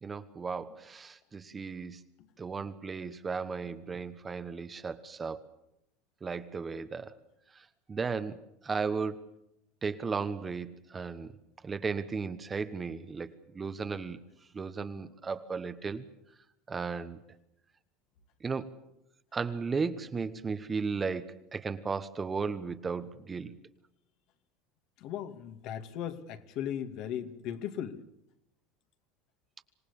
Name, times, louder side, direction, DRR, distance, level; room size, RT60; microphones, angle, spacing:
voice 1, 0.0-2.0 2.4-5.5 6.2-7.1 7.5-9.2 9.8-11.3 11.6-14.2 14.5-16.1 16.7-17.2 18.4-18.7 19.3-23.5, right 5 dB, 20° right, 11 dB, 1.2 m, -35 dB
voice 2, 25.0-28.0, left 10 dB, 55° left, 8 dB, 2.4 m, -37 dB
26.5 x 18.5 x 7.1 m, 0.81 s
supercardioid pair, 135°, 0 cm